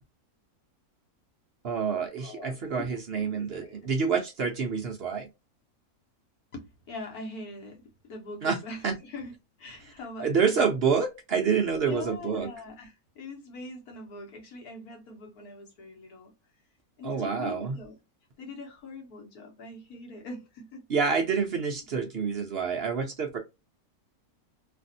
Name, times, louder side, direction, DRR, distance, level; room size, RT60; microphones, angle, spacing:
voice 1, 1.6-5.3 8.4-8.6 8.8-8.9 9.8-9.9 10.2-12.5 17.0-17.8 20.9-23.4, right 6 dB, 55° right, 0.8 m, -27 dB
voice 2, 2.2-3.0 3.2-3.9 6.5-10.7 11.9-16.3 17.0-18.0 18.4-20.8 21.3-21.4, left 2 dB, 85° left, 1.7 m, -42 dB
3.3 x 2.5 x 2.6 m
omnidirectional pair, 1.6 m